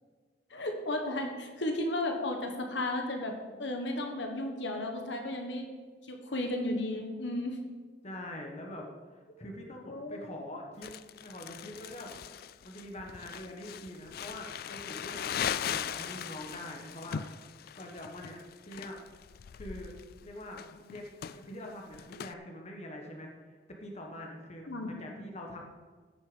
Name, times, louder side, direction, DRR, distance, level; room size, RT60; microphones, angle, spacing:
voice 1, 0.5-3.3 3.6-5.7 6.1-7.6 9.9-10.2 24.7-24.9, left 1 dB, 70° left, 3 dB, 1.5 m, -34 dB
voice 2, 8.0-8.9 9.1-10.9 11.2-17.3 17.7-18.4 18.7-19.0 19.5-19.9 20.2-21.1 21.3-23.3 23.8-25.6, left 1 dB, 35° left, 1 dB, 1.4 m, -44 dB
Crumpling crinkling, 10.8-22.3, left 8 dB, 50° left, 0.3 m, -39 dB
15.0 x 6.6 x 5.2 m, 1.5 s
head